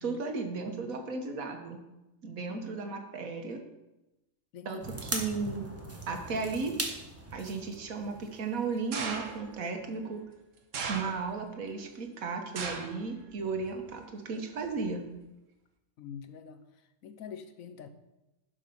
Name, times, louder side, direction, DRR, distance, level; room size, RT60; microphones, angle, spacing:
voice 1, 0.0-1.8 2.2-3.6 4.6-5.7 6.1-6.7 7.3-10.2 10.9-15.0, right 4 dB, 85° right, 4 dB, 1.6 m, -35 dB
sound 1, 4.8-9.3 9.6-9.7, right 1 dB, 10° right, 1.1 m, -40 dB
sound 2, 8.9-9.6 10.7-11.5 12.6-13.1 13.4-13.9 14.8-14.9, right 5 dB, 70° right, 1.4 m, -37 dB
voice 2, 16.0-16.6 17.0-17.9, left 7 dB, 80° left, 10 dB, 1.2 m, -45 dB
11.0 x 5.4 x 5.4 m, 0.98 s
omnidirectional pair, 1.4 m